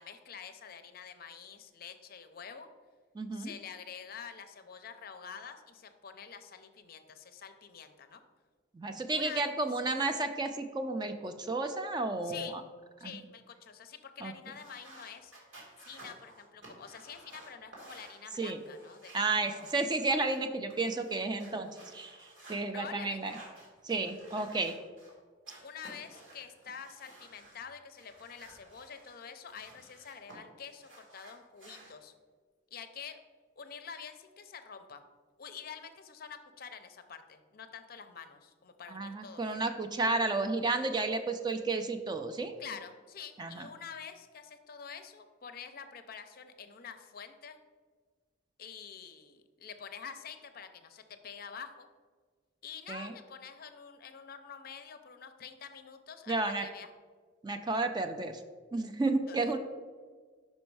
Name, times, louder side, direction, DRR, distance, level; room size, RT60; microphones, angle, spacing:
voice 1, 0.0-2.7 3.3-8.2 9.1-9.5 12.2-12.6 13.0-15.3 15.9-19.7 22.7-23.2 25.6-32.1 32.7-33.2 33.6-35.0 35.4-39.6 42.6-47.6 48.6-51.9 52.6-56.9 59.3-59.6, left 7 dB, 50° left, 8 dB, 0.5 m, -47 dB
voice 2, 3.1-3.5 8.7-12.5 13.0-13.2 14.2-14.3 18.4-18.6 19.1-23.3 23.8-24.7 38.9-42.5 43.4-43.7 52.9-53.1 56.3-56.7 57.4-58.4 58.7-59.6, right 3 dB, 20° right, 7 dB, 0.3 m, -32 dB
sound 1, 14.5-20.4 20.7-22.6 23.1-25.1 25.4-27.6 27.9-30.3 30.6-31.9, right 2 dB, 80° right, 2.0 m, -54 dB
5.4 x 5.2 x 4.6 m, 1.5 s
head